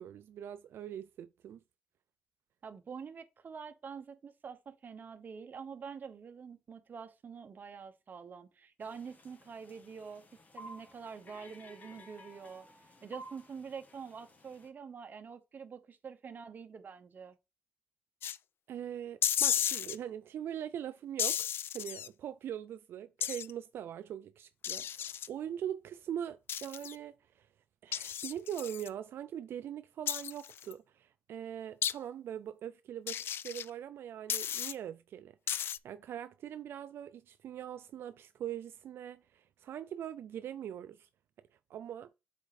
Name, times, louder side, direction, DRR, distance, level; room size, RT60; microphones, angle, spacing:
voice 1, 0.0-1.6 18.7-21.5 21.7-27.5 27.8-35.3 35.8-41.1 41.7-42.1, right 10 dB, 90° right, 0.3 m, -42 dB
voice 2, 2.6-10.2 10.5-12.7 13.0-17.4, right 6 dB, 55° right, 1.0 m, -46 dB
sound 1, 8.8-14.7, equal, 45° left, 1.9 m, -54 dB
sound 2, 18.2-18.4 19.2-20.0 21.2-22.1 23.2-23.5 24.6-25.3 26.5-27.0 27.9-28.9 30.1-30.7 31.8-31.9 33.1-33.7 34.3-34.7 35.5-35.8, left 10 dB, 85° left, 0.3 m, -33 dB
8.0 x 4.2 x 4.1 m
cardioid pair, 100°, 4 cm